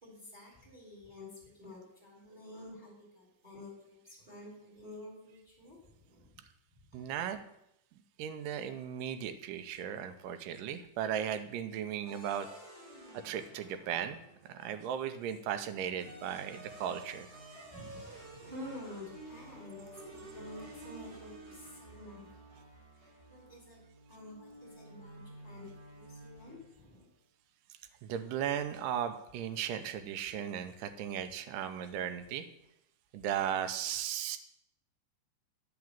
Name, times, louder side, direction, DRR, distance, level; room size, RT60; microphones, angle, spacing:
voice 1, 0.0-6.4 6.9-7.0 17.7-22.2 22.5-22.6 22.9-23.8 24.1-27.0, left 1 dB, 15° right, -4 dB, 3.3 m, -50 dB
voice 2, 6.9-7.4 8.2-12.5 13.2-17.3 28.0-32.4 33.1-34.4, right 9 dB, 90° right, 9 dB, 2.3 m, -36 dB
sound 1, 12.1-14.6 15.7-26.8, right 1 dB, 55° right, 4.8 m, -51 dB
9.4 x 4.9 x 7.2 m, 0.79 s
omnidirectional pair, 3.8 m